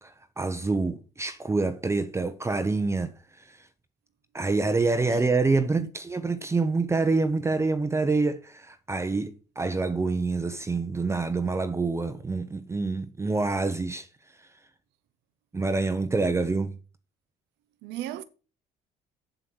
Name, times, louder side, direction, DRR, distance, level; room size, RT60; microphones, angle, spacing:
voice 1, 0.0-3.6 4.3-14.1 15.5-16.7, right 3 dB, 15° right, 0.8 m, -27 dB
voice 2, 5.0-5.3 5.8-5.9 17.8-18.2, right 13 dB, 90° right, 0.7 m, -36 dB
8.0 x 7.7 x 6.2 m
cardioid pair, 110°, 17 cm